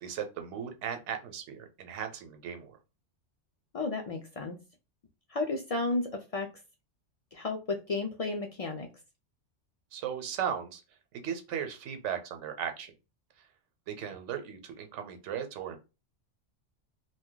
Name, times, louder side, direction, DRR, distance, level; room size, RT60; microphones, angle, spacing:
voice 1, 0.0-2.8 9.9-10.8 11.1-12.9 13.9-15.8, right 8 dB, 90° right, 7 dB, 0.9 m, -37 dB
voice 2, 3.7-4.6 5.3-6.5 7.3-8.9, left 3 dB, 60° left, 2 dB, 0.3 m, -33 dB
2.6 x 2.2 x 3.7 m, 0.28 s
omnidirectional pair, 1.2 m